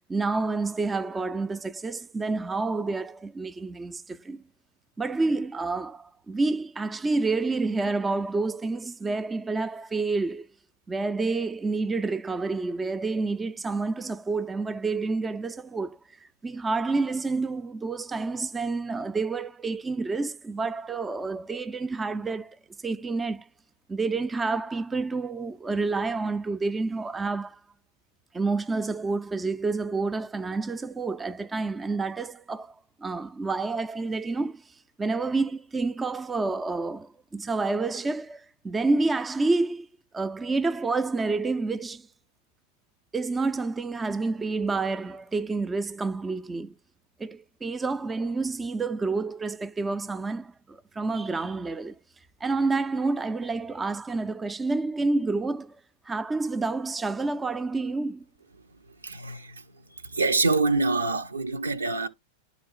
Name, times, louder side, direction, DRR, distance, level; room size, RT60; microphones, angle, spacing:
voice 1, 0.1-4.4 5.0-10.5 10.9-22.6 22.8-23.5 23.9-27.6 28.3-32.7 33.0-34.6 35.0-39.9 40.1-42.1 43.1-46.7 47.2-51.9 52.4-55.8 56.1-58.3, right 3 dB, 15° right, 0.3 m, -29 dB
voice 2, 59.0-59.5 60.0-62.1, right 3 dB, 75° right, 0.7 m, -25 dB
11.5 x 4.1 x 2.4 m
figure-of-eight pair, 90°, 0 cm